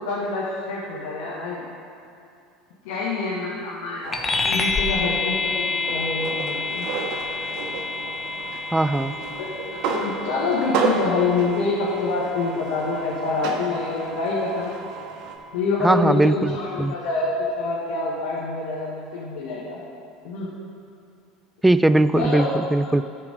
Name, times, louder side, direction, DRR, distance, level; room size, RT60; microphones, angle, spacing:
voice 1, 0.0-1.6 2.8-4.2 4.4-6.8 9.4-9.5 9.8-14.7 15.5-19.8 20.2-20.5 22.1-22.5, left 3 dB, 75° left, -6 dB, 1.6 m, -26 dB
sound 1, 4.0-15.3, right 5 dB, 60° right, 1.1 m, -32 dB
sound 2, 4.1-14.0, left 4 dB, 20° left, 1.0 m, -29 dB
voice 2, 8.7-9.1 15.8-17.0 21.6-23.0, right 2 dB, 10° right, 14 dB, 0.3 m, -19 dB
13.0 x 4.8 x 5.2 m, 2.5 s
hypercardioid pair, 85°, 0 cm